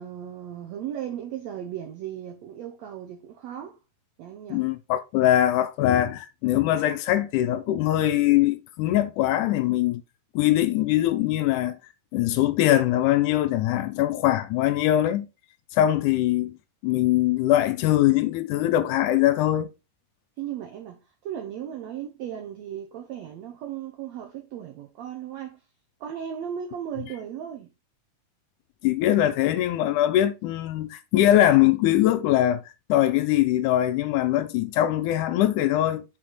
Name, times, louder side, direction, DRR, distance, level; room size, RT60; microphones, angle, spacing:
voice 1, 0.0-3.8 4.2-4.6 20.4-25.6 26.0-27.7, right 9 dB, 70° right, 1.7 m, -36 dB
voice 2, 4.5-10.0 10.4-11.8 12.1-15.3 15.7-16.5 16.8-19.7 28.8-32.6 32.9-36.1, left 13 dB, 80° left, 1.9 m, -22 dB
6.2 x 4.1 x 4.0 m
omnidirectional pair, 3.8 m